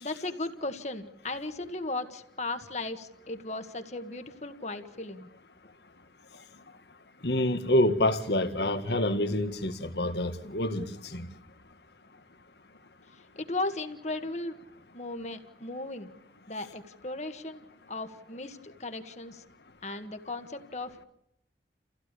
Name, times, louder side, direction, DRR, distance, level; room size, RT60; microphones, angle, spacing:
voice 1, 0.0-5.3 13.1-14.6 14.9-16.1 16.5-19.4 19.8-21.0, left 2 dB, 40° left, 1.7 m, -36 dB
voice 2, 7.2-11.3, left 1 dB, 70° left, 2.0 m, -27 dB
29.5 x 16.0 x 8.4 m
head